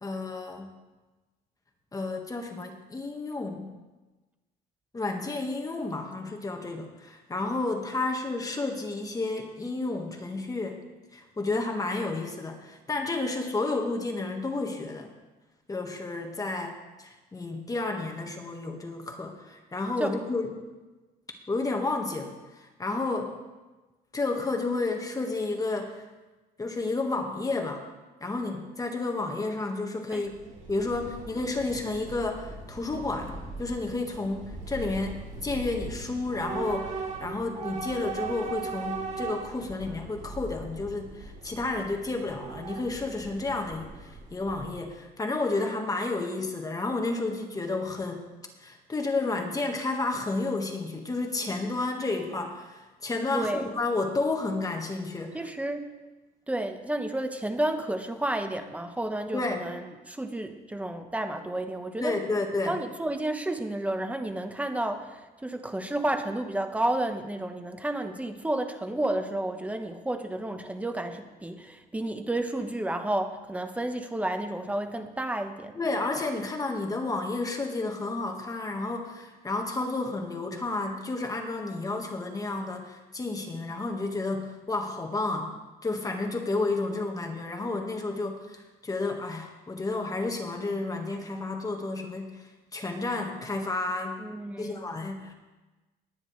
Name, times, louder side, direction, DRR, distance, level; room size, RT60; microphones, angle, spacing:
voice 1, 0.0-0.8 1.9-3.8 4.9-10.8 11.1-15.1 15.7-20.5 21.5-23.4 24.1-26.0 26.6-27.8 28.2-30.4 30.7-48.3 48.6-55.5 59.3-59.6 62.0-62.8 75.7-85.5 85.8-92.4 92.7-94.3 94.6-95.3, left 3 dB, 20° left, 3 dB, 1.6 m, -31 dB
Train / Subway metro underground, 30.2-45.0, right 4 dB, 45° right, 3.3 m, -39 dB
voice 2, 53.3-53.7 55.3-55.9 56.5-62.2 62.7-75.8 86.8-86.9 94.2-94.8, right 1 dB, 10° right, 7 dB, 1.1 m, -31 dB
19.5 x 10.0 x 3.2 m, 1.2 s
cardioid pair, 110°, 17 cm